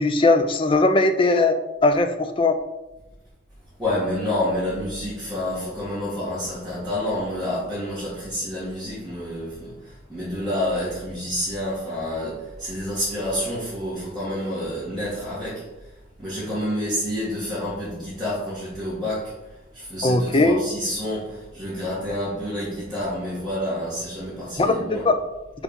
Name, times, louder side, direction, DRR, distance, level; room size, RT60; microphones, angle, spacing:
voice 1, 0.0-1.5 1.8-2.6 20.0-20.6 24.6-24.7 25.0-25.2, left 2 dB, 25° left, 8 dB, 0.4 m, -19 dB
voice 2, 3.8-15.9 16.2-25.1, left 1 dB, ahead, -14 dB, 2.1 m, -29 dB
4.8 x 4.1 x 5.2 m, 1.0 s
head